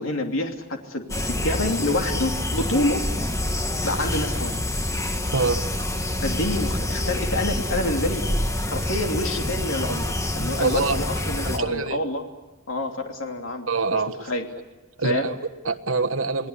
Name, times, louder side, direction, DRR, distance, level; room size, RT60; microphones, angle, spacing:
voice 1, 0.0-3.1 3.8-4.6 6.2-8.3 8.7-12.2 12.7-13.7 14.3-14.4 15.0-15.3, left 1 dB, 75° left, 3 dB, 3.0 m, -27 dB
sound 1, 1.1-11.6, left 1 dB, 15° left, 1.7 m, -27 dB
voice 2, 5.3-5.6 10.6-11.0 11.5-12.0 13.7-14.3 15.0-16.5, right 4 dB, 75° right, 7 dB, 1.5 m, -25 dB
28.5 x 19.5 x 9.9 m, 1.1 s
head